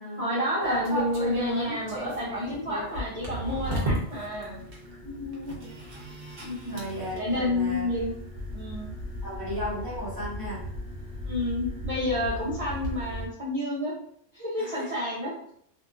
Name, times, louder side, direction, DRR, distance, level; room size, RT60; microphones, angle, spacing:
voice 1, 0.2-4.6 6.4-6.9 7.1-8.1 8.5-8.9 11.2-14.0 14.3-15.3, left 1 dB, 35° right, -10 dB, 0.7 m, -29 dB
sound 1, 0.6-13.3, equal, 60° right, 1.0 m, -35 dB
voice 2, 5.0-5.8 6.7-7.9 9.2-10.6 14.6-14.9 15.2-15.3, left 1 dB, 20° left, -9 dB, 1.3 m, -35 dB
2.7 x 2.5 x 2.4 m, 0.67 s
omnidirectional pair, 1.2 m